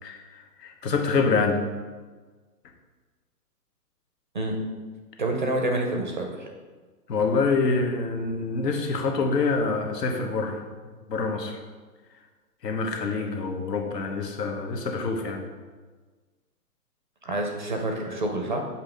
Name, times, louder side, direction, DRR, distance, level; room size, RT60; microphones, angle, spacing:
voice 1, 0.0-1.6 7.1-10.6 11.1-11.6 12.6-15.5, left 4 dB, 85° left, 3 dB, 1.2 m, -26 dB
voice 2, 5.2-6.5 17.2-18.6, right 1 dB, 35° right, 2 dB, 0.4 m, -28 dB
7.4 x 2.8 x 4.9 m, 1.4 s
hypercardioid pair, 155°, 48 cm